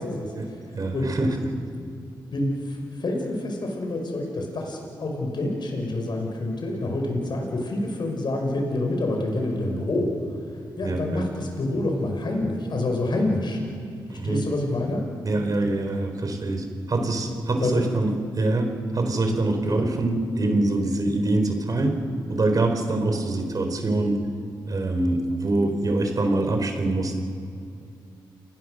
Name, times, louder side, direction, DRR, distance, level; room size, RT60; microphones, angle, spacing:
voice 1, 0.0-0.6 0.9-1.1 1.9-2.0 2.3-10.4 10.8-13.6 14.2-15.0 16.9-17.1 17.6-17.8 19.5-19.8, left 2 dB, 60° left, 1 dB, 5.9 m, -27 dB
voice 2, 0.7-1.4 10.8-11.3 14.1-14.5 15.3-22.0 22.3-24.3 24.7-27.1, right 2 dB, 45° right, 5 dB, 4.5 m, -24 dB
29.0 x 20.5 x 6.7 m, 2.5 s
cardioid pair, 70°, 9 cm